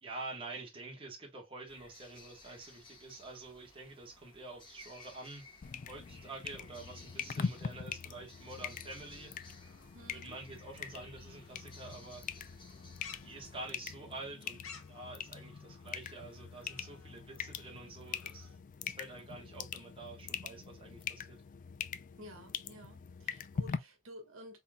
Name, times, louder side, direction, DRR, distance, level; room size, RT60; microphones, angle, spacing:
voice 1, 0.0-5.4 5.9-9.3 10.1-12.2 13.2-14.6 14.9-21.4, right 2 dB, 25° right, 1.4 m, -48 dB
sound 1, 1.7-13.7, left 2 dB, 25° left, 1.6 m, -58 dB
sound 2, 5.6-23.8, left 6 dB, 40° left, 0.3 m, -43 dB
sound 3, 8.3-18.6, left 5 dB, 85° left, 1.3 m, -58 dB
voice 2, 9.9-10.3 22.2-24.6, equal, 70° right, 1.5 m, -52 dB
4.2 x 3.7 x 2.3 m
head